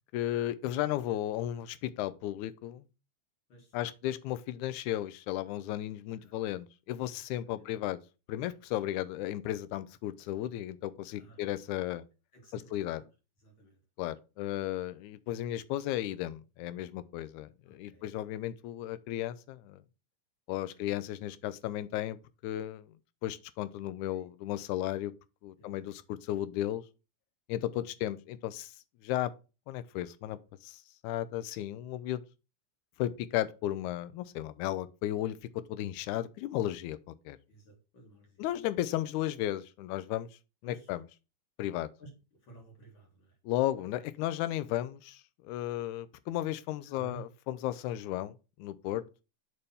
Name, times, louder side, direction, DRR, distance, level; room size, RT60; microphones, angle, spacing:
voice 1, 0.1-2.9 3.7-8.0 8.3-12.1 12.5-13.0 14.0-19.8 20.5-22.2 22.4-22.9 23.2-25.1 25.4-26.8 27.5-28.7 29.0-29.3 29.7-32.2 33.0-35.4 35.7-37.4 38.4-40.3 40.6-41.1 41.6-41.9 43.5-48.3 48.6-49.0, left 13 dB, 80° left, 1.9 m, -34 dB
voice 2, 6.2-6.5 7.1-7.2 7.5-7.7 11.1-11.4 11.9-12.0 12.3-13.0 13.4-13.8 17.7-18.1 20.6-20.9 24.1-24.3 25.6-25.9 27.8-27.9 36.0-36.2 37.5-38.5 40.6-40.9 42.0-42.1 42.4-43.4 46.9-47.2, right 2 dB, 45° left, 2.2 m, -54 dB
6.7 x 3.4 x 5.4 m
omnidirectional pair, 3.6 m